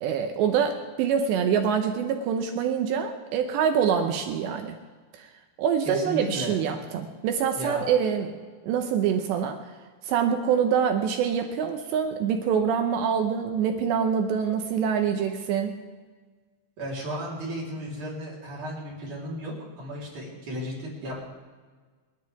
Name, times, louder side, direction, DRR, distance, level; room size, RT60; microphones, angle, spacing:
voice 1, 0.0-4.8 5.1-5.3 5.6-8.3 8.6-9.6 10.0-15.8, right 7 dB, 75° right, 5 dB, 2.8 m, -25 dB
voice 2, 5.8-6.6 7.5-7.9 16.8-21.3, equal, 40° right, -4 dB, 4.8 m, -34 dB
29.5 x 11.5 x 3.5 m, 1.5 s
omnidirectional pair, 5.8 m